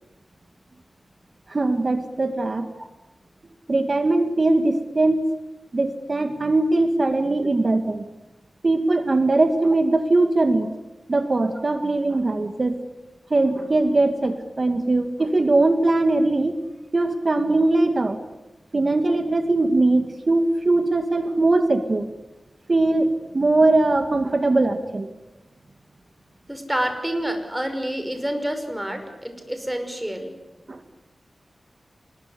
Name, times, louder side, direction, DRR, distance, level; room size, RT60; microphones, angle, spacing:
voice 1, 1.5-2.7 3.7-5.2 5.7-8.0 8.6-10.7 11.1-12.8 13.3-16.6 16.9-18.2 18.7-22.1 22.7-25.1 30.7-30.8, right 2 dB, 45° right, 8 dB, 2.2 m, -20 dB
voice 2, 26.5-30.3, right 1 dB, 10° right, 7 dB, 5.7 m, -28 dB
27.0 x 20.5 x 9.9 m, 1.0 s
wide cardioid pair, 65°, 0 cm